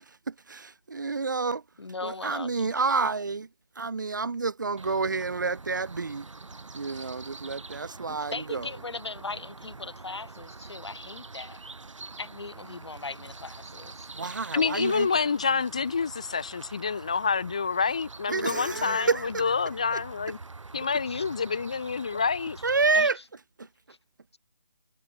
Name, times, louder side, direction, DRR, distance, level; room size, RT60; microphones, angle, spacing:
voice 1, 0.3-1.6 2.0-3.5 3.8-6.2 6.7-8.7 14.1-15.2 18.3-19.5 19.9-20.0 22.6-23.2 23.6-23.7, right 4 dB, 35° right, 1.3 m, -29 dB
voice 2, 1.8-2.7 3.0-3.1 8.1-11.6 12.2-14.1 18.7-19.0 21.1-21.2 22.0-22.2 22.9-23.1, left 3 dB, 55° left, 7.1 m, -39 dB
sound 1, 4.8-23.0, right 3 dB, 70° right, 3.1 m, -45 dB
voice 3, 14.5-20.4 20.7-22.6, left 5 dB, 10° left, 0.8 m, -28 dB
hypercardioid pair, 180°, 17 cm